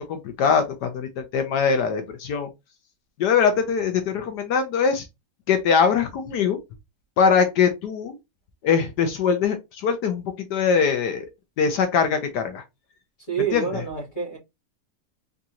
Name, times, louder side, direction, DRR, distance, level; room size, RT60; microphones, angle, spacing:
voice 1, 0.1-2.5 3.2-5.1 5.5-6.6 7.2-8.2 8.6-11.3 11.6-12.6 13.5-13.7, left 6 dB, 70° left, 1.3 m, -22 dB
voice 2, 13.3-14.4, right 7 dB, 45° left, 2.6 m, -27 dB
3.9 x 3.6 x 2.8 m
omnidirectional pair, 1.9 m